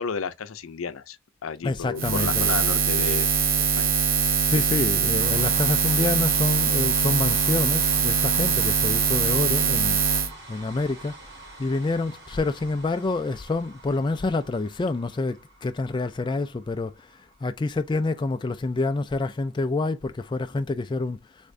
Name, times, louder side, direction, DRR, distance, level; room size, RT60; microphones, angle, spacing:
voice 1, 0.0-3.9, left 5 dB, 90° left, 0.5 m, -32 dB
voice 2, 1.6-2.5 4.5-10.0 10.5-11.1 11.6-17.1 17.4-21.2, left 3 dB, 25° left, 0.3 m, -27 dB
Buzz, 2.0-10.3, right 6 dB, 75° right, 0.8 m, -22 dB
sound 1, 5.1-19.2, right 2 dB, 60° right, 2.2 m, -45 dB
3.5 x 3.3 x 2.5 m
head